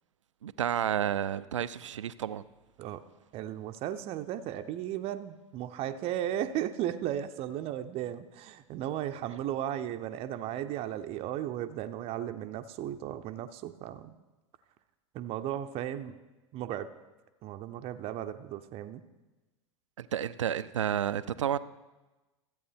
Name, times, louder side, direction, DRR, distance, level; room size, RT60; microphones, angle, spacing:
voice 1, 0.4-2.4 20.0-21.6, right 9 dB, 85° right, 0.4 m, -31 dB
voice 2, 3.3-14.2 15.1-16.2 16.5-16.9 17.4-19.0, right 11 dB, 40° right, 0.6 m, -35 dB
14.0 x 8.4 x 4.3 m
hypercardioid pair, 90°, 15 cm